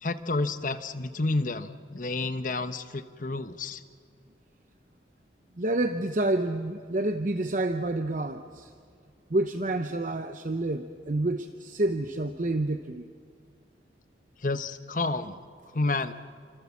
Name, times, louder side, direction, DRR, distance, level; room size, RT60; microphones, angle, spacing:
voice 1, 0.0-3.8 14.4-15.4 15.7-16.1, left 3 dB, 45° left, 10 dB, 1.1 m, -30 dB
voice 2, 5.6-8.7 9.3-13.0, right 2 dB, 45° right, 8 dB, 0.8 m, -28 dB
29.5 x 25.5 x 7.3 m, 2.2 s
head